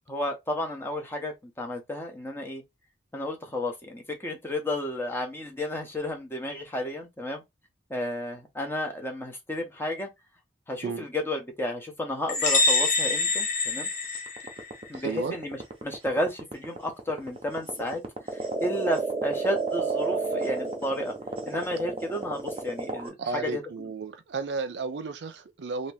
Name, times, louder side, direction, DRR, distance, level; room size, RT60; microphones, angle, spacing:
voice 1, 0.1-2.6 3.1-7.4 7.9-10.1 10.7-13.9 14.9-18.0 18.3-21.1 21.4-23.6, left 1 dB, 15° left, 0.8 m, -32 dB
sound 1, 12.3-14.9, left 3 dB, 45° left, 0.9 m, -25 dB
sound 2, 14.1-23.1, right 3 dB, 35° right, 0.7 m, -31 dB
voice 2, 14.9-15.3 23.2-25.9, right 4 dB, 80° right, 0.5 m, -33 dB
2.9 x 2.6 x 3.4 m
head